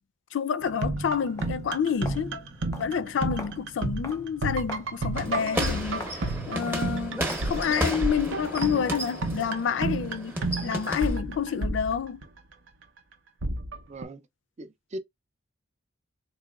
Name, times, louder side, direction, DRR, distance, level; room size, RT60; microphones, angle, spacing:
voice 1, 0.3-2.4 2.8-6.1 6.5-12.2, left 7 dB, 70° left, 0.4 m, -28 dB
sound 1, 0.6-12.5 13.4-14.0, right 2 dB, 80° right, 0.7 m, -32 dB
Walk footsteps, 1.3-9.0, left 2 dB, 15° left, 0.6 m, -45 dB
sound 2, 5.2-11.2, right 1 dB, 10° right, 0.8 m, -33 dB
voice 2, 13.9-14.2 14.6-15.0, right 1 dB, 35° right, 0.4 m, -39 dB
3.9 x 2.9 x 2.3 m
head